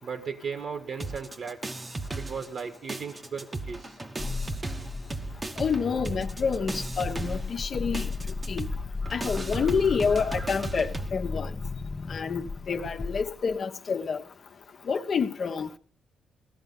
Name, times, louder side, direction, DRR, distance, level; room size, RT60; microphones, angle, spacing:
voice 1, 0.0-1.6 2.2-4.0 9.0-10.8, right 6 dB, 55° right, 1.7 m, -38 dB
sound 1, 1.0-2.6 2.9-11.1, right 2 dB, 25° right, 1.1 m, -36 dB
sound 2, 4.2-13.6, left 3 dB, 30° left, 0.9 m, -35 dB
voice 2, 5.6-8.1 8.5-8.7 9.1-11.5 12.1-14.2 14.9-15.8, left 6 dB, 50° left, 1.2 m, -28 dB
16.5 x 13.0 x 5.5 m
cardioid pair, 90°, 0 cm